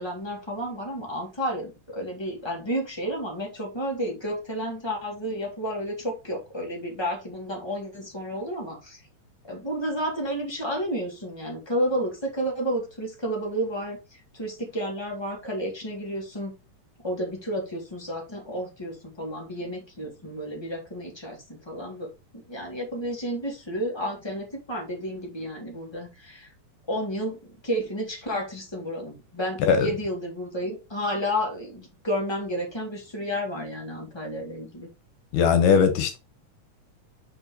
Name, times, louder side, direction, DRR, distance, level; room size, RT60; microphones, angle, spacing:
voice 1, 0.0-9.0 9.5-16.5 17.0-22.1 22.5-26.5 26.9-34.9, equal, 10° left, 1.4 m, -31 dB
voice 2, 35.3-36.2, left 6 dB, 75° left, 2.5 m, -19 dB
6.5 x 4.4 x 3.8 m
omnidirectional pair, 3.8 m